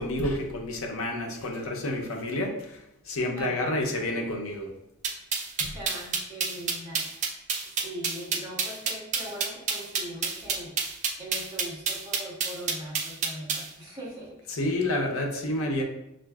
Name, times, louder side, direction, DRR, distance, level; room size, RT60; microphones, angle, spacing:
voice 1, 0.0-2.8 3.1-4.7 14.5-15.8, left 1 dB, 75° left, 1 dB, 0.7 m, -29 dB
voice 2, 3.3-3.9 5.6-7.1 7.8-10.8 11.2-14.6, equal, 15° right, -7 dB, 1.3 m, -41 dB
sound 1, 5.0-13.7, right 5 dB, 35° right, 0.4 m, -28 dB
6.1 x 2.5 x 2.3 m, 0.86 s
head